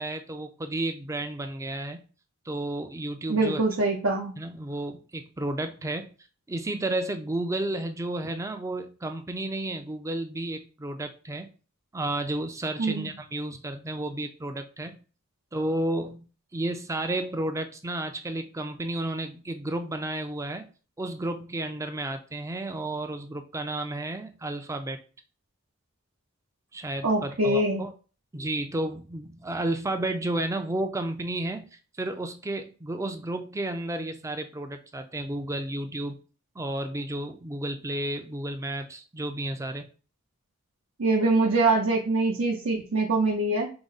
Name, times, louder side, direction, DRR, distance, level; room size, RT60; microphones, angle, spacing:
voice 1, 0.0-2.0 2.5-3.6 4.4-6.1 6.5-11.5 11.9-15.0 15.5-16.2 16.5-20.7 21.0-25.0 26.7-27.9 28.3-31.7 32.0-36.2 36.6-39.8, right 1 dB, 15° right, 7 dB, 0.4 m, -32 dB
voice 2, 3.3-4.3 12.8-13.1 27.0-27.8 41.0-43.7, right 2 dB, 70° right, -1 dB, 0.7 m, -24 dB
4.7 x 2.1 x 4.0 m, 0.36 s
head